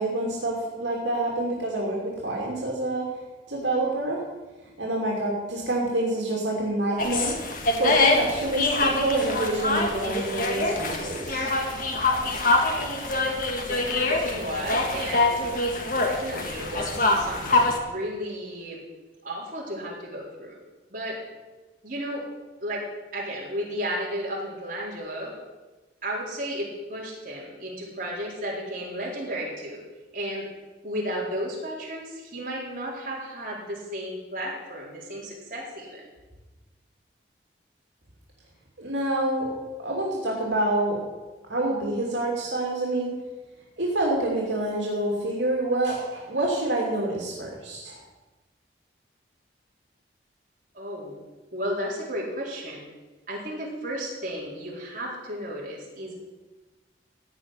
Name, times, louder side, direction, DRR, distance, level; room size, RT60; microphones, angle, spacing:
voice 1, 0.0-3.1 3.5-4.2 4.8-7.4 7.8-11.5 38.8-39.5 39.8-41.0 41.5-43.1 43.8-48.0, right 1 dB, 75° right, -3 dB, 2.9 m, -27 dB
sound 1, 7.0-17.8, left 2 dB, 45° left, 1.8 m, -25 dB
voice 2, 13.7-15.3 16.0-18.8 19.2-20.6 20.9-21.2 21.8-22.3 22.6-25.4 26.0-29.8 30.1-30.5 30.8-36.0 50.7-51.2 51.5-52.8 53.3-56.1, equal, 45° right, -4 dB, 4.3 m, -33 dB
16.0 x 5.6 x 9.6 m, 1.2 s
head